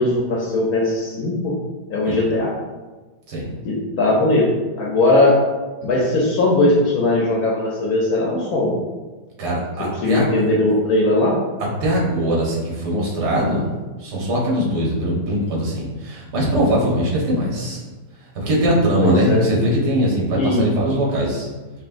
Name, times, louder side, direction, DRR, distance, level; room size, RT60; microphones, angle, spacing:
voice 1, 0.0-1.6 1.9-2.5 3.6-4.5 4.8-5.4 5.8-8.8 10.0-11.4 19.0-19.5 20.3-20.7, left 2 dB, 70° left, -3 dB, 1.1 m, -19 dB
voice 2, 9.4-10.4 11.8-13.7 14.0-17.8 18.3-21.5, equal, 75° right, -4 dB, 1.7 m, -21 dB
5.5 x 2.4 x 2.5 m, 1.3 s
omnidirectional pair, 1.8 m